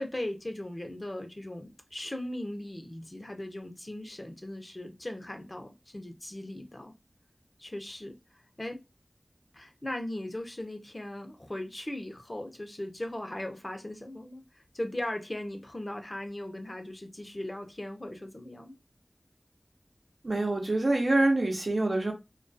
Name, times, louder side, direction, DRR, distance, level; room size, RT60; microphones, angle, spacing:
voice 1, 0.0-6.9 7.6-8.8 9.5-18.8, left 1 dB, 40° left, 0.6 m, -38 dB
voice 2, 20.2-22.1, right 2 dB, 75° right, 0.6 m, -25 dB
2.3 x 2.2 x 2.6 m
wide cardioid pair, 40°, 0 cm